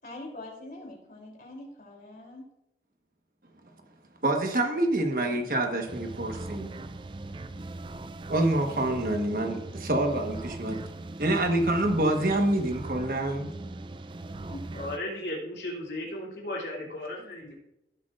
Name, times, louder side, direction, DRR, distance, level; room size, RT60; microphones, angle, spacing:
voice 1, 0.0-2.5 4.7-5.3 14.5-14.8, left 1 dB, 50° left, -1 dB, 3.2 m, -44 dB
voice 2, 4.2-6.7 8.3-10.8 11.2-13.5, right 1 dB, 50° right, 4 dB, 1.3 m, -26 dB
sound 1, 5.9-15.0, right 2 dB, 25° right, 0.4 m, -40 dB
voice 3, 14.7-17.6, left 1 dB, 70° left, -2 dB, 2.9 m, -35 dB
17.5 x 8.1 x 2.5 m, 0.87 s
head